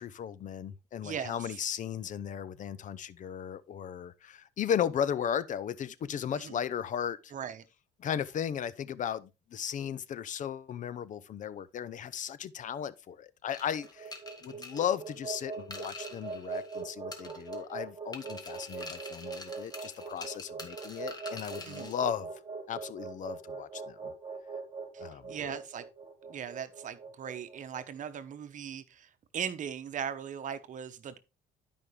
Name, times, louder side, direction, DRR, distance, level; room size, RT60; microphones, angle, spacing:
voice 1, 0.0-7.3 8.0-14.1 14.4-22.3 22.7-24.1 25.0-25.6, left 9 dB, 50° left, 0.6 m, -36 dB
voice 2, 1.0-1.3 6.4-6.6 7.3-7.6 21.6-21.9 25.3-25.8 26.3-29.1 29.3-31.2, right 8 dB, 50° right, 1.0 m, -38 dB
sound 1, 13.5-16.8 17.1-17.8 18.1-22.0, left 2 dB, 25° left, 1.9 m, -46 dB
sound 2, 13.6-27.9, right 4 dB, 25° right, 2.7 m, -42 dB
12.0 x 5.2 x 3.3 m
cardioid pair, 110°, 17 cm